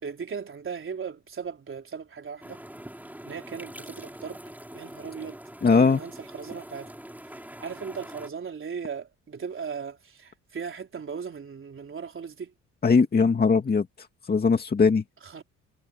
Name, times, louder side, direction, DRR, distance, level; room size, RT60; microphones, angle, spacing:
voice 1, 0.0-2.6 3.2-4.4 4.7-5.4 5.7-6.9 7.6-12.5 15.2-15.4, right 6 dB, 45° right, 4.1 m, -37 dB
sound 1, 2.4-8.3, right 1 dB, 5° right, 6.7 m, -43 dB
voice 2, 5.6-6.0 12.8-13.9 14.2-15.0, left 5 dB, 30° left, 2.2 m, -20 dB
cardioid pair, 90°, 30 cm